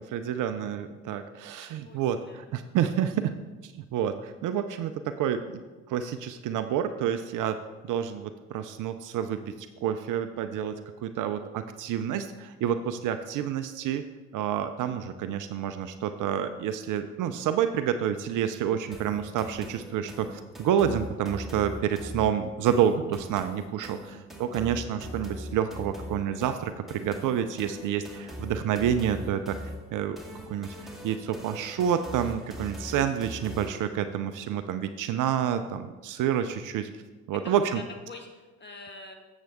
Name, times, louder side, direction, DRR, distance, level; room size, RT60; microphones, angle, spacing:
voice 1, 0.0-3.3 3.6-5.4 5.9-14.0 14.3-29.6 29.9-30.2 30.5-30.8 31.0-36.9 37.3-37.8, right 9 dB, 60° right, 9 dB, 0.5 m, -29 dB
voice 2, 1.6-2.4 24.0-24.1 37.4-39.1, left 3 dB, 30° left, 4 dB, 1.5 m, -45 dB
sound 1, 18.9-33.9, equal, ahead, 1.9 m, -41 dB
7.5 x 7.2 x 3.5 m, 1.2 s
hypercardioid pair, 60°, 36 cm